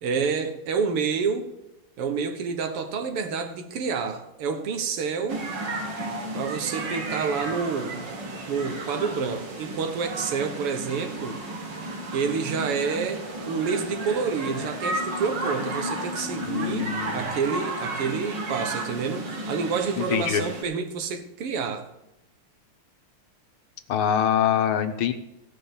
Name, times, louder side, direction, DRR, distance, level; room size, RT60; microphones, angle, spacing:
voice 1, 0.0-1.5 2.0-5.5 6.3-8.1 8.5-11.4 12.1-21.9, right 5 dB, 85° right, 2.1 m, -28 dB
sound 1, 5.3-20.6, right 2 dB, 55° right, 2.4 m, -33 dB
voice 2, 16.5-17.4 20.0-20.4 23.9-25.1, left 9 dB, 75° left, 1.8 m, -24 dB
16.5 x 6.0 x 7.0 m
omnidirectional pair, 2.4 m